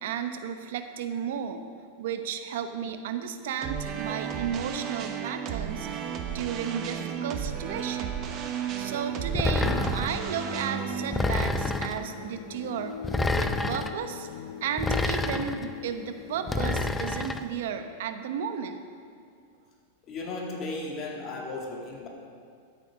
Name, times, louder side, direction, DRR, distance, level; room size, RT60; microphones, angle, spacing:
voice 1, 0.0-1.6 2.0-5.9 6.3-8.2 8.8-13.0 13.3-14.3 14.6-18.8, right 7 dB, 70° right, 8 dB, 1.0 m, -33 dB
sound 1, 3.6-12.8, right 8 dB, 35° right, 1.0 m, -34 dB
sound 2, 9.4-10.2 11.1-12.0 13.0-13.9 14.8-15.7 16.5-17.4, left 3 dB, 10° left, 0.5 m, -28 dB
sound 3, 10.7-16.9, left 8 dB, 75° left, 0.5 m, -42 dB
voice 2, 20.1-22.1, left 2 dB, 35° left, -1 dB, 2.4 m, -35 dB
13.0 x 8.3 x 5.1 m, 2.2 s
supercardioid pair, 135°, 0 cm